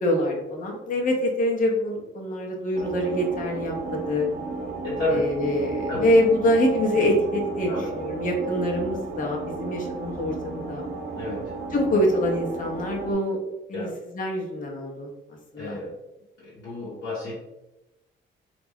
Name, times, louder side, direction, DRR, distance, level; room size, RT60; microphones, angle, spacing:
voice 1, 0.0-4.3 5.1-10.9 11.7-13.4 13.7-13.9 14.1-15.1 15.5-15.8, left 1 dB, 40° left, 0 dB, 0.8 m, -25 dB
sound 1, 2.7-13.1, right 3 dB, 80° right, 0.7 m, -34 dB
voice 2, 4.8-5.2 5.9-6.1 7.7-7.9 11.1-11.5 13.7-13.9 15.6-15.9 16.4-17.3, left 1 dB, 65° left, -8 dB, 0.9 m, -30 dB
2.4 x 2.1 x 3.4 m, 0.95 s
cardioid pair, 90°, 20 cm